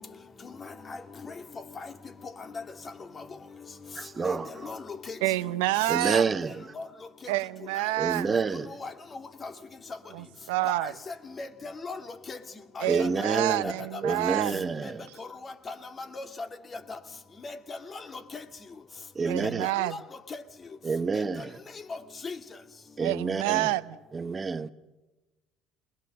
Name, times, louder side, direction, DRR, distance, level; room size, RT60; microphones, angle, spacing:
voice 1, 0.4-1.9 2.4-2.6 3.1-3.3 4.2-5.2 6.7-6.9 8.3-9.5 9.9-10.0 10.7-12.4 12.8-14.3 14.8-14.9 15.2-16.5 16.7-17.0 17.4-18.4 19.2-20.0 20.3-20.4 21.4-21.5 21.7-22.4, left 3 dB, 35° left, 2.4 m, -39 dB
voice 2, 4.0-4.5 5.9-6.5 8.0-8.7 12.9-13.7 14.0-15.0 19.1-19.7 20.8-21.5 23.0-23.7 24.1-24.7, right 5 dB, 30° right, 1.0 m, -28 dB
voice 3, 5.2-6.3 7.3-8.3 10.1-10.9 12.8-14.7 19.3-19.9 23.0-24.0, right 18 dB, 80° right, 0.7 m, -28 dB
22.0 x 21.0 x 6.7 m
hypercardioid pair, 70°, 0 cm